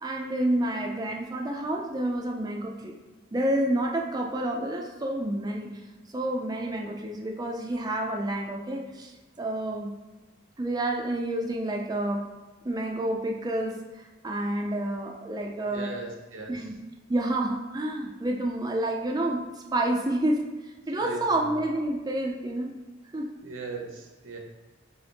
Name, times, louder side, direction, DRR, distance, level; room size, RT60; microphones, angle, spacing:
voice 1, 0.0-2.9 3.3-5.7 6.1-9.1 9.4-9.9 10.6-12.2 12.6-15.9 16.5-16.7 17.1-22.7 23.1-23.3, right 1 dB, 20° right, 0 dB, 0.4 m, -29 dB
voice 2, 15.7-16.7 21.0-21.5 23.4-24.4, right 4 dB, 90° right, 1 dB, 0.9 m, -38 dB
3.8 x 3.3 x 4.0 m, 1.2 s
head